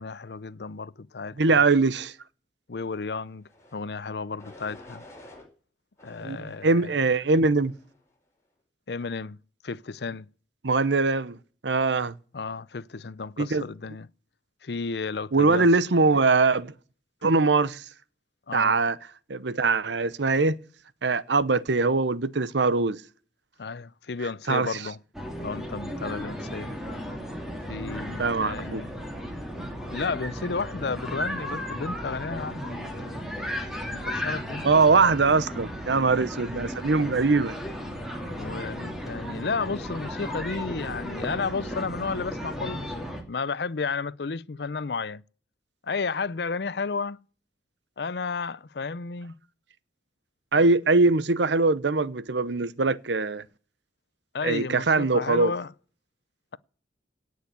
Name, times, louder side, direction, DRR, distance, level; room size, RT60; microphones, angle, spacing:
voice 1, 0.0-1.6 2.7-5.0 6.0-7.0 8.9-9.4 9.6-10.3 12.3-14.1 14.6-15.7 18.5-18.8 23.6-25.0 25.4-26.7 27.7-28.9 29.9-33.3 33.9-34.7 38.4-45.2 45.8-47.2 48.0-49.3 54.3-55.7, left 4 dB, 65° left, 0.6 m, -33 dB
voice 2, 1.4-2.1 6.2-7.7 10.6-11.4 11.6-12.2 13.4-13.6 15.3-16.7 17.2-17.8 18.5-19.0 19.3-20.6 21.0-23.0 24.5-24.8 28.2-28.8 34.6-37.6 50.5-53.4 54.4-55.5, right 3 dB, 80° right, 0.9 m, -22 dB
sound 1, 3.4-3.8 4.4-5.4 6.0-7.0 7.6-8.0, left 1 dB, 15° left, 5.1 m, -50 dB
sound 2, 25.1-43.2, equal, ahead, 3.0 m, -35 dB
18.0 x 6.5 x 8.3 m
head